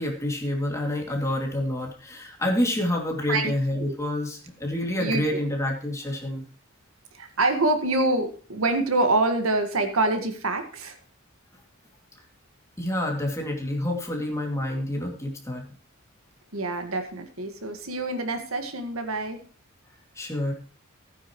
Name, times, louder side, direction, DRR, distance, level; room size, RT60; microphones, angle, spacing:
voice 1, 0.0-6.5 12.8-15.7 20.1-20.5, left 1 dB, 15° left, 0 dB, 2.5 m, -28 dB
voice 2, 5.0-5.4 7.1-11.0 16.5-19.4, right 2 dB, 80° right, 6 dB, 1.8 m, -26 dB
16.0 x 9.5 x 3.1 m, 0.39 s
head